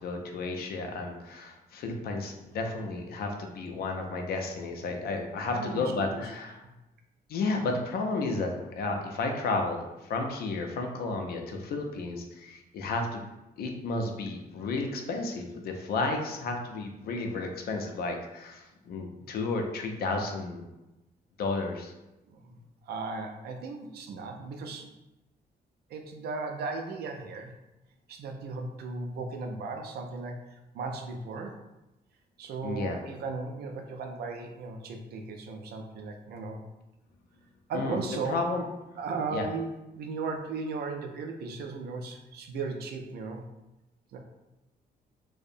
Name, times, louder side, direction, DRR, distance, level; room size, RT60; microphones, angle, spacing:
voice 1, 0.0-6.6 7.3-13.2 13.6-20.7 21.4-21.9 32.6-33.0 37.7-38.6 39.3-39.5, left 3 dB, 70° left, 3 dB, 0.4 m, -32 dB
voice 2, 5.5-6.2 22.3-22.6 22.8-24.9 25.9-27.5 28.1-31.6 32.4-36.6 37.7-38.4 39.0-43.4 44.1-44.2, right 4 dB, 75° right, 4 dB, 0.4 m, -36 dB
2.6 x 2.0 x 2.5 m, 0.98 s
cardioid pair, 120°, 16 cm